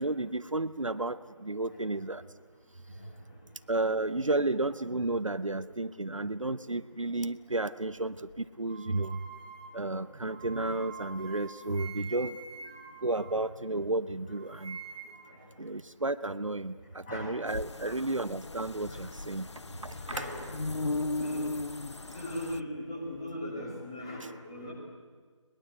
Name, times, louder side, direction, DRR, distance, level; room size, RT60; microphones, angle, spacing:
voice 1, 0.0-2.2 3.7-9.2 9.7-12.4 13.0-14.8 15.6-19.5 19.8-20.3, right 2 dB, 75° right, 13 dB, 0.9 m, -32 dB
voice 2, 2.9-3.4 15.3-15.5 17.1-17.4 17.8-18.0 18.9-19.0 19.9-20.5 21.2-21.4 22.1-24.7, left 1 dB, 10° left, -1 dB, 2.4 m, -39 dB
sound 1, 8.7-14.0 14.3-15.4, right 5 dB, 15° right, 1.1 m, -47 dB
sound 2, 17.5-22.6, left 2 dB, 60° left, 0.6 m, -37 dB
22.0 x 20.5 x 8.1 m, 1.5 s
figure-of-eight pair, 170°, 17 cm